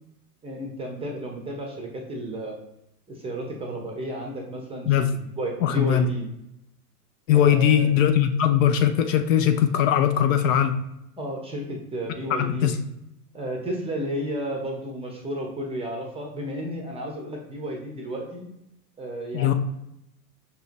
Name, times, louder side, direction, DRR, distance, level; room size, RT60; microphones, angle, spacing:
voice 1, 0.4-2.6 3.1-6.3 7.3-7.9 11.2-12.7 13.3-18.4 19.0-19.5, right 1 dB, 10° right, 1 dB, 0.6 m, -32 dB
voice 2, 5.6-6.1 7.3-10.7 12.3-12.7 19.3-19.5, left 9 dB, 55° left, 7 dB, 0.5 m, -20 dB
5.4 x 2.8 x 2.5 m, 0.84 s
hypercardioid pair, 110°, 48 cm